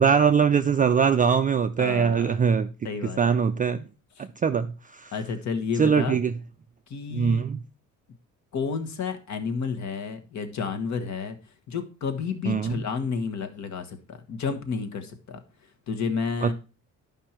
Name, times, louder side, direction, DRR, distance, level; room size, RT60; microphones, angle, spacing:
voice 1, 0.0-2.7 3.2-3.8 4.2-4.7 5.0-5.1 5.8-6.3 7.1-7.6 12.5-12.8 16.4-16.5, right 6 dB, 25° right, 0.3 m, -22 dB
voice 2, 1.8-2.4 2.8-3.3 4.2-4.3 5.1-6.2 6.9-7.5 8.5-11.4 11.7-15.4 15.9-16.5, left 5 dB, 55° left, 1.4 m, -31 dB
11.0 x 5.4 x 4.4 m
cardioid pair, 145°, 33 cm